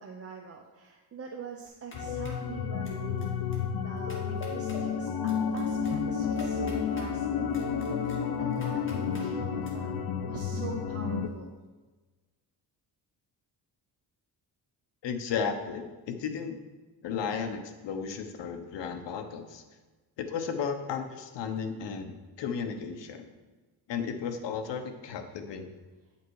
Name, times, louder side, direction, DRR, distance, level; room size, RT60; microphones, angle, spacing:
voice 1, 0.0-9.9 10.2-11.5, right 4 dB, 35° right, 1 dB, 0.8 m, -44 dB
sound 1, 1.7-2.5 2.8-3.3 3.5-3.6 4.0-4.8 5.3-7.1 7.5-9.3 9.6-9.7, left 2 dB, 30° left, 1.9 m, -51 dB
sound 2, 1.9-11.3, left 6 dB, 60° left, 0.8 m, -31 dB
voice 2, 15.0-16.6 17.0-19.6 20.2-23.3 23.9-25.7, left 6 dB, 80° left, 7 dB, 1.1 m, -34 dB
10.0 x 5.8 x 4.8 m, 1.3 s
cardioid pair, 120°, 42 cm